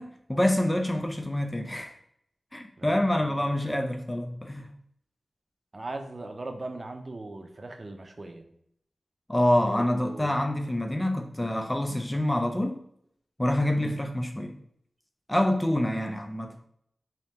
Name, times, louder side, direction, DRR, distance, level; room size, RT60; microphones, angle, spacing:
voice 1, 0.0-1.9 2.5-4.7 9.3-12.8 13.4-14.6 15.3-16.6, left 1 dB, 15° left, 4 dB, 0.4 m, -26 dB
voice 2, 2.8-3.5 5.7-8.4 9.7-10.4 13.8-13.9, right 2 dB, 50° right, 5 dB, 0.6 m, -39 dB
3.3 x 2.8 x 4.0 m, 0.70 s
cardioid pair, 45°, 0 cm